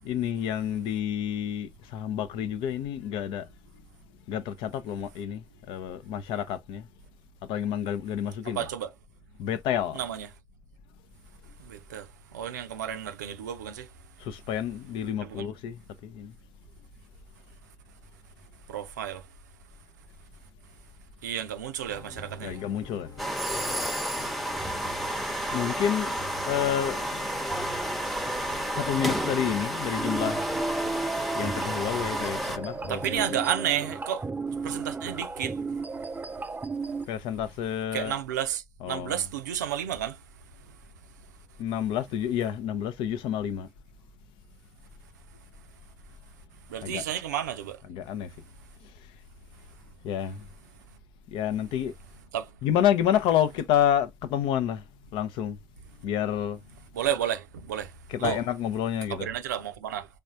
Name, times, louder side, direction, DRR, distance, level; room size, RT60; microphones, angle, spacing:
voice 1, 0.0-3.5 4.3-6.9 7.5-8.7 9.4-10.0 14.2-16.4 22.4-23.1 25.5-26.1 26.5-27.0 28.7-30.5 31.3-33.4 37.1-38.1 38.8-39.2 41.6-43.7 46.8-47.0 47.9-48.3 48.8-48.9 50.0-50.5 51.3-51.9 52.6-54.8 55.1-55.6 56.0-56.6 58.1-59.3, left 10 dB, 65° left, 0.5 m, -29 dB
voice 2, 8.4-8.9 9.9-10.3 11.6-13.9 15.2-15.5 18.7-19.2 21.2-22.6 32.9-34.2 34.6-35.6 37.9-40.2 46.7-47.8 52.3-52.5 56.9-57.9 58.2-58.4 59.1-60.1, right 10 dB, 80° right, 0.4 m, -31 dB
sound 1, 21.9-33.5, left 2 dB, 45° left, 1.0 m, -46 dB
sound 2, 23.2-32.6, right 1 dB, ahead, 0.8 m, -31 dB
sound 3, 30.0-37.1, right 4 dB, 20° right, 0.4 m, -34 dB
4.1 x 3.4 x 2.4 m
figure-of-eight pair, 45°, 9 cm